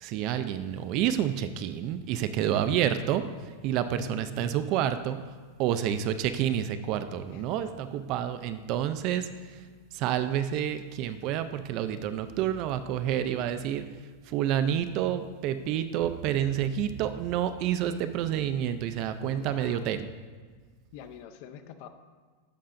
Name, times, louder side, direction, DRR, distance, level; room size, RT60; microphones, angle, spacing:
voice 1, 0.0-3.2 3.6-5.2 5.6-9.6 9.9-13.9 14.2-20.1, right 10 dB, 40° right, 11 dB, 0.4 m, -29 dB
voice 2, 3.9-4.6 7.3-7.4 19.2-19.9 20.9-21.9, left 9 dB, 45° left, 9 dB, 0.6 m, -45 dB
11.5 x 6.5 x 2.5 m, 1.5 s
supercardioid pair, 155°, 0 cm